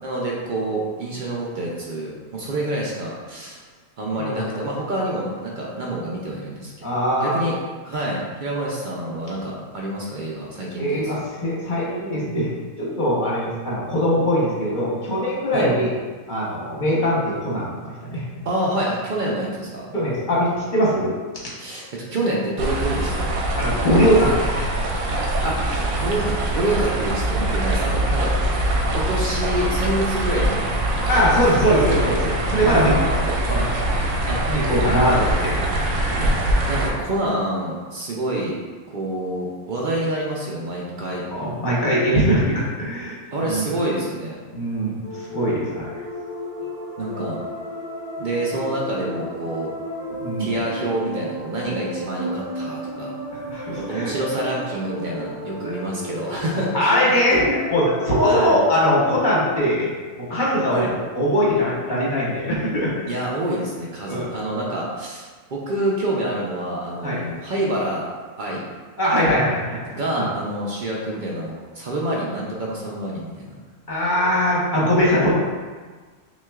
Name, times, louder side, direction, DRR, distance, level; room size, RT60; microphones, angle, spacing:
voice 1, 0.0-3.6 4.0-6.7 7.2-7.6 7.8-11.2 15.5-15.7 18.4-19.9 21.6-23.4 25.4-28.3 28.9-31.8 32.6-33.2 34.3-34.4 36.7-38.6 38.9-41.2 43.3-44.4 47.0-47.4 48.2-49.7 50.4-53.1 53.7-56.9 58.2-58.6 60.7-60.9 63.1-68.1 68.4-68.6 69.9-73.5, right 1 dB, 60° right, -4 dB, 0.5 m, -27 dB
voice 2, 4.2-4.6 6.8-7.3 10.8-12.5 12.8-15.9 16.3-18.2 19.9-21.1 23.6-24.7 31.1-34.0 34.4-35.6 36.1-36.3 41.3-43.2 43.5-43.7 44.5-45.8 50.2-50.5 53.3-54.1 55.6-55.7 56.7-59.9 60.2-62.9 64.1-64.3 67.0-67.2 69.0-69.8 70.1-70.2 73.9-75.4, equal, 40° left, -6 dB, 1.0 m, -21 dB
sound 1, 22.6-36.9, right 1 dB, 80° right, 1.0 m, -23 dB
sound 2, 45.0-59.6, equal, 35° right, 0.9 m, -33 dB
5.9 x 2.4 x 2.3 m, 1.4 s
omnidirectional pair, 1.4 m